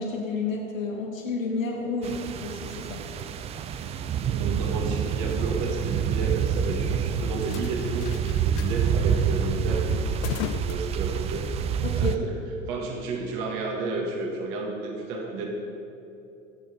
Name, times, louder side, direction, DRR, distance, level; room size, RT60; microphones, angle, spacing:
voice 1, 0.0-3.0 11.8-12.2, left 3 dB, 75° left, 0 dB, 1.6 m, -30 dB
sound 1, 2.0-12.2, right 7 dB, 20° right, 0.3 m, -27 dB
sound 2, 4.3-11.6, left 13 dB, 40° left, 0.5 m, -40 dB
voice 2, 4.3-10.2 10.6-11.6 12.0-12.4 12.7-15.5, right 3 dB, 50° right, 1 dB, 2.0 m, -32 dB
14.5 x 8.7 x 5.2 m, 2.9 s
figure-of-eight pair, 80°, 39 cm